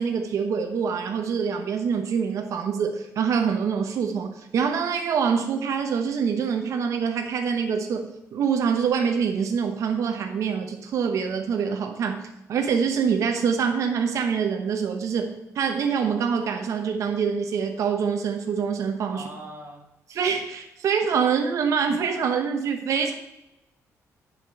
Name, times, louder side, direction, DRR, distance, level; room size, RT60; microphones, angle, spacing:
voice 1, 0.0-12.2 12.5-19.3 20.1-23.1, right 6 dB, 65° right, 4 dB, 1.0 m, -25 dB
voice 2, 19.1-19.8, right 1 dB, 40° right, 1 dB, 3.3 m, -40 dB
9.6 x 5.2 x 6.2 m, 0.94 s
cardioid pair, 135°, 6 cm